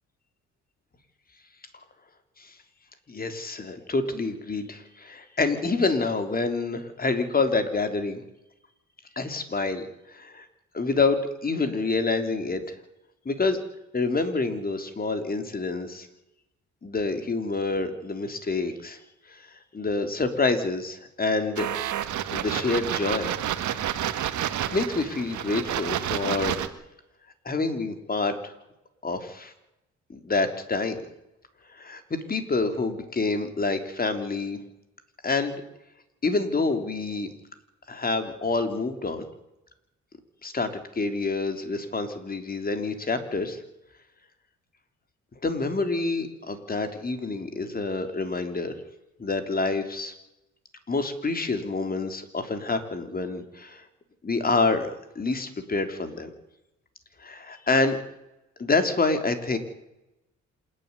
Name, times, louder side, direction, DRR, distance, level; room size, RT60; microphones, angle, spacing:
voice 1, 3.1-8.2 9.2-9.9 10.1-10.5 10.7-12.6 13.3-13.6 13.9-16.1 16.8-19.0 19.3-19.5 19.7-21.7 22.3-23.3 24.1-24.4 24.7-26.5 27.5-28.5 29.0-29.5 30.1-31.0 31.8-34.6 35.2-35.6 36.2-37.3 37.9-39.2 40.4-43.6 45.4-48.7 49.2-50.1 50.9-53.8 54.2-56.3 57.2-58.0 58.6-59.6, left 3 dB, 30° left, 8 dB, 3.5 m, -27 dB
sound 1, 21.6-26.7, right 11 dB, 75° right, 1.9 m, -29 dB
27.0 x 11.0 x 9.8 m, 0.88 s
cardioid pair, 90°, 30 cm